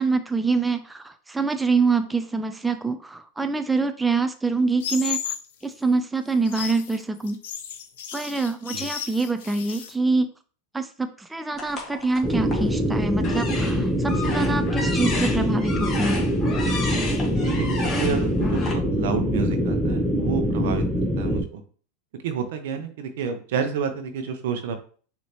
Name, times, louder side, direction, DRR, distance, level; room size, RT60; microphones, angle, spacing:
voice 1, 0.0-5.3 5.6-7.4 8.1-10.3 10.7-16.2, right 3 dB, 10° right, 8 dB, 0.4 m, -25 dB
sound 1, 4.8-5.5 6.3-9.9, left 8 dB, 75° left, 0.6 m, -33 dB
sound 2, 11.6-12.7 13.2-18.7, left 3 dB, 25° left, 1.5 m, -33 dB
sound 3, 12.2-21.4, equal, 5° left, 0.8 m, -24 dB
voice 2, 17.4-20.8 21.2-21.6 22.2-24.8, right 6 dB, 70° right, 7 dB, 0.8 m, -29 dB
5.3 x 2.8 x 3.0 m, 0.42 s
hypercardioid pair, 105°, 0 cm